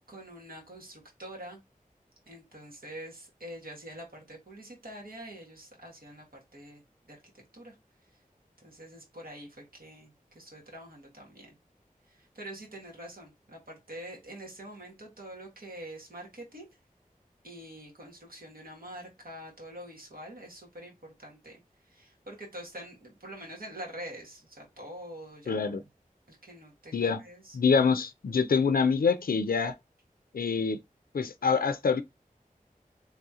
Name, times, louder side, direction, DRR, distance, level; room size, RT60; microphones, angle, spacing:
voice 1, 0.1-1.6 2.3-6.8 7.1-7.2 7.5-7.7 8.6-11.5 12.1-16.7 17.4-21.6 21.9-25.8 26.3-27.6, right 1 dB, 85° right, 1.6 m, -45 dB
voice 2, 25.5-25.8 26.9-27.2 27.5-29.7 30.3-30.8 31.1-32.0, left 5 dB, 85° left, 0.4 m, -25 dB
3.6 x 3.3 x 2.8 m
wide cardioid pair, 55°, 15 cm